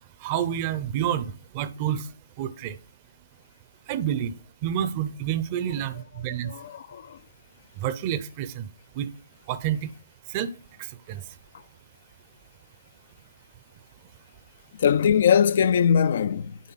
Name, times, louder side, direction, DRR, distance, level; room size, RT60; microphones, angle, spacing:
voice 1, 0.2-2.1 2.4-2.8 3.9-4.3 4.6-6.5 7.8-8.7 9.0-9.1 9.5-9.9 10.3-10.5 10.8-11.2, right 10 dB, 30° right, 0.6 m, -28 dB
voice 2, 6.4-7.2 14.8-16.6, left 8 dB, 50° left, 0.3 m, -21 dB
9.2 x 3.6 x 4.1 m
figure-of-eight pair, 140°, 0 cm